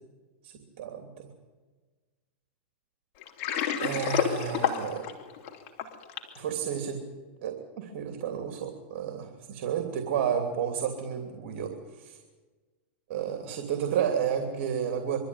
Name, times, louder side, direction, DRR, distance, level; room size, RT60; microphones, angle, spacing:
voice 1, 0.4-1.3 3.8-5.1 6.3-7.0 7.4-12.2 13.1-15.2, right 8 dB, 65° right, 4 dB, 2.9 m, -31 dB
Water, 3.2-6.4, left 8 dB, 50° left, 3.3 m, -29 dB
24.0 x 13.0 x 9.8 m, 1.3 s
hypercardioid pair, 125°, 7 cm